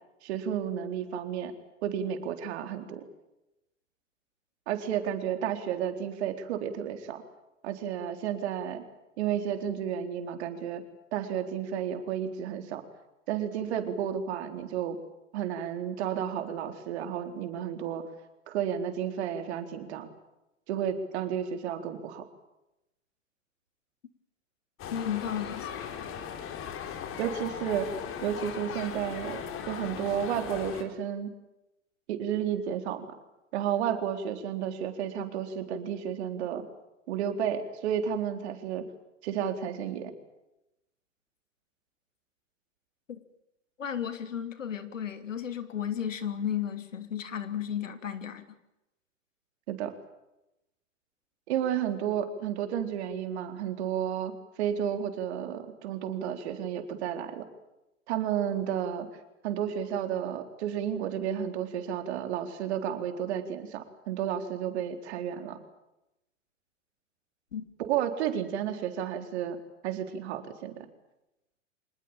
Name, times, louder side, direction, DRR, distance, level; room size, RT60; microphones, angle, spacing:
voice 1, 0.2-1.5 1.8-3.0 4.7-7.2 7.6-8.8 9.2-10.8 11.1-12.8 13.3-15.0 15.3-18.1 18.5-20.1 20.7-22.2 27.2-27.9 28.2-31.3 32.1-33.1 33.5-36.7 37.1-38.8 39.2-40.1 49.7-49.9 51.5-57.5 58.1-59.1 59.4-65.6 67.8-69.6 69.8-70.9, right 9 dB, 60° right, 7 dB, 4.0 m, -32 dB
sound 1, 24.8-30.8, left 8 dB, 35° left, 3.9 m, -38 dB
voice 2, 24.9-25.9 43.1-43.2 43.8-48.5 67.5-67.7, left 9 dB, 80° left, 10 dB, 2.9 m, -34 dB
26.0 x 20.5 x 9.0 m, 0.91 s
hypercardioid pair, 100°, 38 cm